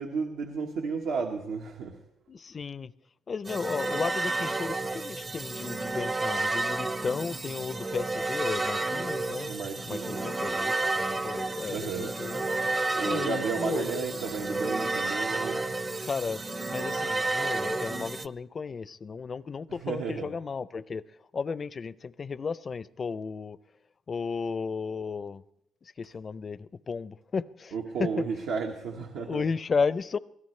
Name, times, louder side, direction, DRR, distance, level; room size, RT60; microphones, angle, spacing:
voice 1, 0.0-2.0 9.4-10.3 11.6-12.1 13.0-15.6 19.8-20.3 27.7-29.4, right 5 dB, 90° right, 1 dB, 1.3 m, -33 dB
voice 2, 2.3-2.9 3.3-9.5 9.9-12.4 13.0-14.2 16.0-21.0 21.3-23.6 24.1-25.4 25.8-27.7 28.0-28.3 29.2-30.2, left 5 dB, 40° left, 18 dB, 0.5 m, -34 dB
sound 1, 3.5-18.3, right 2 dB, 25° right, 0.6 m, -31 dB
sound 2, 11.0-17.6, right 5 dB, 70° right, 7.2 m, -49 dB
24.0 x 17.0 x 3.2 m, 0.77 s
cardioid pair, 90°, 0 cm